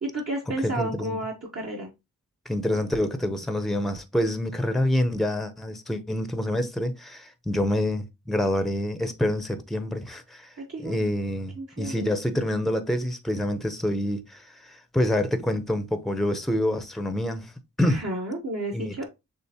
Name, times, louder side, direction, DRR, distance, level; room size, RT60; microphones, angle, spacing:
voice 1, 0.0-1.9 10.6-11.0 11.5-12.1 17.8-19.0, right 1 dB, 45° right, 1.1 m, -32 dB
voice 2, 0.6-1.2 2.5-10.5 10.8-17.5 17.8-18.0 18.7-19.0, left 1 dB, ahead, 0.7 m, -27 dB
6.7 x 2.5 x 2.8 m
wide cardioid pair, 70°, 36 cm